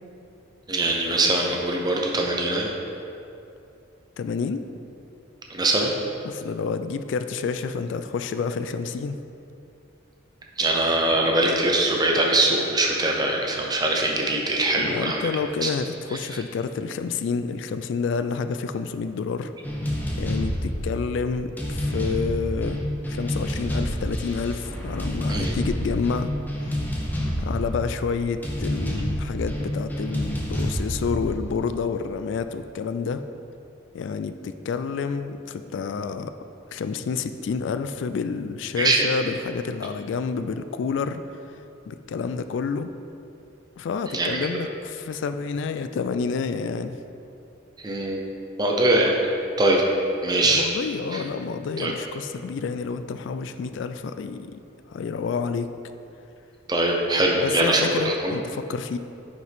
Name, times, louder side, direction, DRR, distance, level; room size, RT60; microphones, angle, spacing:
voice 1, 0.7-2.7 5.5-5.9 10.6-15.3 15.6-15.7 25.3-25.5 38.8-39.1 44.1-44.4 47.8-48.2 48.6-49.2 49.6-49.8 50.2-50.7 51.1-51.2 51.8-51.9 56.7-58.4, right 2 dB, 20° right, 0 dB, 0.8 m, -22 dB
voice 2, 4.2-4.6 6.2-9.2 14.8-19.5 20.2-22.8 23.1-26.3 26.7-26.8 27.4-33.2 33.9-36.3 36.7-41.2 41.9-42.9 43.8-47.0 50.4-54.6 54.9-55.7 57.4-59.0, left 5 dB, 65° left, 10 dB, 0.3 m, -29 dB
sound 1, 19.6-32.4, equal, 10° left, 0.8 m, -29 dB
9.6 x 5.2 x 3.5 m, 2.7 s
head